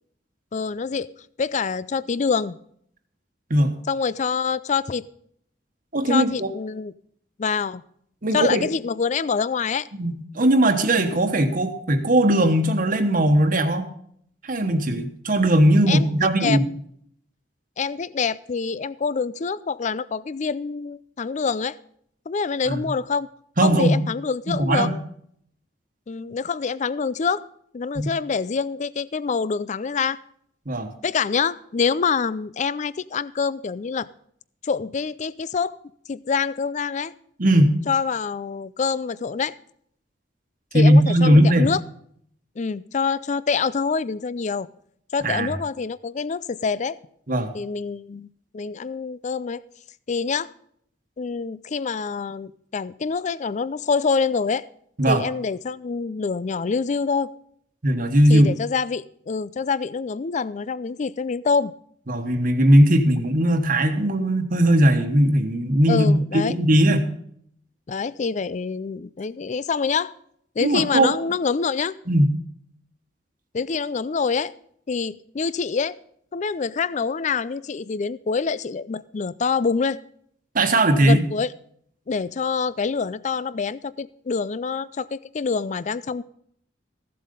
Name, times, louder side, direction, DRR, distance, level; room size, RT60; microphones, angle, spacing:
voice 1, 0.5-1.1 1.4-2.6 3.9-5.0 6.1-6.9 7.4-7.8 8.3-9.9 15.9-16.1 16.4-16.6 17.8-21.8 22.3-23.3 23.6-24.9 26.1-27.4 27.7-30.2 31.0-34.1 34.6-35.8 36.1-37.1 37.9-39.5 40.7-41.8 42.6-44.7 45.1-47.0 47.5-48.3 48.5-49.6 50.1-50.5 51.2-54.7 55.1-57.3 58.3-61.7 65.9-66.6 67.9-70.1 70.6-71.9 73.5-74.5 74.9-76.0 76.3-80.0 81.0-81.5 82.1-86.2, left 5 dB, 40° left, 19 dB, 0.4 m, -26 dB
voice 2, 5.9-6.5 8.2-8.6 9.9-13.9 14.4-16.6 22.7-22.8 23.6-24.0 24.5-24.9 27.9-28.1 30.7-30.9 37.4-37.8 40.7-41.7 45.2-45.5 47.3-47.5 55.0-55.2 57.8-58.5 62.1-67.1 70.6-71.1 72.1-72.3 80.5-81.2, right 1 dB, 50° right, 6 dB, 1.3 m, -18 dB
15.0 x 7.7 x 5.3 m, 0.65 s
head